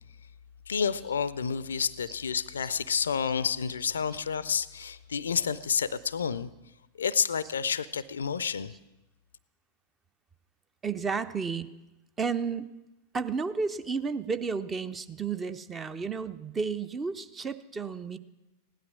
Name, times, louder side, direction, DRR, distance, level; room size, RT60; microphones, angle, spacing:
voice 1, 0.7-6.5 7.0-8.7, left 6 dB, 70° left, 19 dB, 0.4 m, -29 dB
voice 2, 10.8-11.7 12.2-12.7 13.1-18.2, right 5 dB, 20° right, 12 dB, 0.6 m, -32 dB
16.0 x 11.5 x 6.1 m, 1.0 s
figure-of-eight pair, 90°, 0 cm